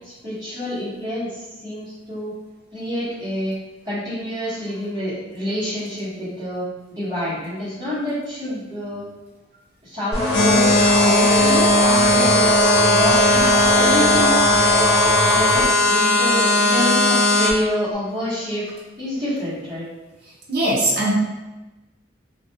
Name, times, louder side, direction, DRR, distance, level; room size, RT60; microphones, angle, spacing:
voice 1, 0.0-2.3 2.7-3.5 3.8-6.7 6.9-9.0 9.8-10.8 11.0-12.5 12.9-14.4 15.2-18.6 19.0-19.8, left 1 dB, 20° right, -17 dB, 1.1 m, -27 dB
sound 1, 10.1-15.6, left 1 dB, 15° left, 0.6 m, -23 dB
sound 2, 10.3-17.5, left 1 dB, 80° left, 0.4 m, -17 dB
voice 2, 20.5-21.1, right 1 dB, 55° right, -4 dB, 0.7 m, -20 dB
2.5 x 2.2 x 2.7 m, 1.1 s
head